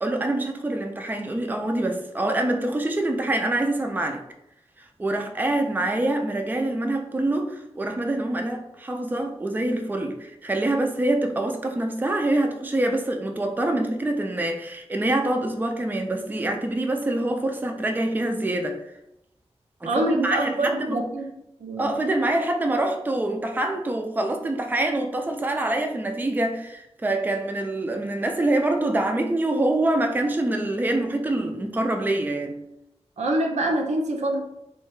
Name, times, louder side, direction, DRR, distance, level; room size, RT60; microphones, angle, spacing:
voice 1, 0.0-4.2 4.8-18.8 19.8-21.0 21.8-32.6, right 1 dB, 15° right, 4 dB, 0.3 m, -25 dB
voice 2, 19.8-21.2 21.6-21.9 33.2-34.4, right 1 dB, 90° right, 1 dB, 0.5 m, -25 dB
2.8 x 2.2 x 3.0 m, 0.83 s
wide cardioid pair, 70°, 11 cm